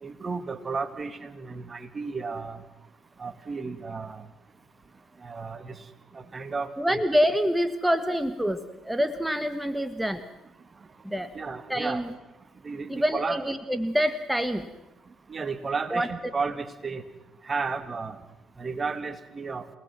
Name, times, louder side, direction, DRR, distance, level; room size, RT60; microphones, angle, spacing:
voice 1, 0.0-2.6 3.2-4.2 5.2-5.8 6.1-7.0 11.3-12.0 12.6-13.4 15.3-17.0 17.5-18.2 18.6-19.7, right 4 dB, 35° right, 11 dB, 1.9 m, -33 dB
voice 2, 6.8-10.2 11.0-11.3 11.7-12.1 12.9-14.7 15.9-16.1, equal, 5° right, 11 dB, 1.5 m, -26 dB
28.5 x 19.0 x 6.1 m, 0.96 s
hypercardioid pair, 55°, 0 cm